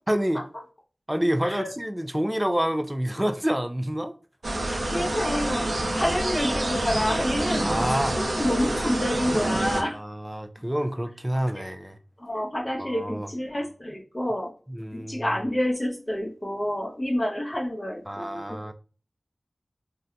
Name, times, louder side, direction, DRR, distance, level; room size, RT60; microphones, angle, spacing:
voice 1, 0.1-0.4 1.1-4.1 7.6-8.2 9.9-12.0 12.8-13.3 14.7-15.3 18.1-18.7, equal, 10° right, 0.4 m, -27 dB
sound 1, 4.4-9.8, right 1 dB, 80° right, 0.5 m, -27 dB
voice 2, 4.7-5.7 5.9-7.7 8.2-10.0 11.5-11.6 12.2-14.5 14.9-18.6, left 1 dB, 30° left, 0.8 m, -28 dB
3.5 x 2.6 x 2.2 m
wide cardioid pair, 50°, 0 cm